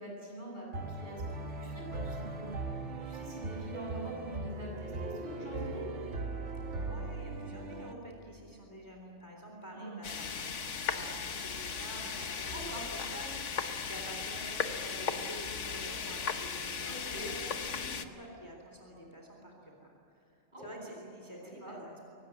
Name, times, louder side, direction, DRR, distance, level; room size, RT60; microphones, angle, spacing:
voice 1, 0.0-5.9 9.7-10.1 12.5-12.9 16.9-17.2 20.5-20.6 21.4-21.7, right 1 dB, 40° right, -3 dB, 8.2 m, -44 dB
sound 1, 0.7-7.9, right 3 dB, 80° right, 1.8 m, -39 dB
voice 2, 6.9-19.9 20.6-22.1, right 1 dB, 15° left, 0 dB, 3.6 m, -48 dB
sound 2, 10.0-18.1, left 6 dB, 85° left, 1.5 m, -37 dB
24.0 x 18.5 x 9.5 m, 2.9 s
omnidirectional pair, 1.2 m